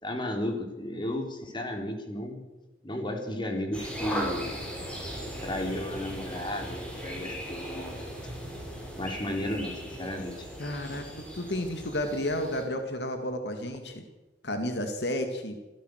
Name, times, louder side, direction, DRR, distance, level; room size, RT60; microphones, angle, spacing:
voice 1, 0.0-2.4 2.8-4.6 5.4-8.0 8.9-10.5, left 1 dB, 25° left, 3 dB, 3.8 m, -34 dB
sound 1, 3.7-12.6, equal, 5° left, 6.8 m, -38 dB
voice 2, 10.6-14.0 14.4-15.6, left 1 dB, 70° left, 6 dB, 2.3 m, -32 dB
26.5 x 16.0 x 6.6 m, 1.1 s
head